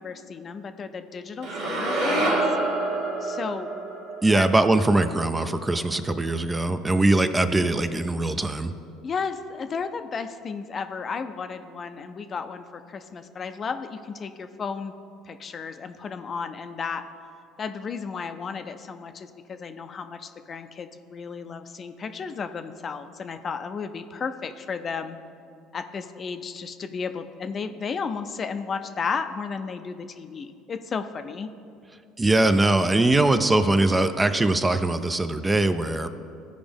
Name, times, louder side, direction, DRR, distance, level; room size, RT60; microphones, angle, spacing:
voice 1, 0.0-2.4 3.2-3.7 4.3-4.5 9.0-14.9 15.3-17.0 17.6-25.2 25.7-31.5, left 5 dB, 40° left, 9 dB, 0.5 m, -33 dB
sound 1, 1.4-5.6, right 2 dB, 75° right, 1.4 m, -28 dB
voice 2, 4.2-8.7 32.2-36.1, right 2 dB, 15° right, 10 dB, 0.5 m, -21 dB
14.5 x 5.1 x 3.5 m, 2.5 s
hypercardioid pair, 75°, 0 cm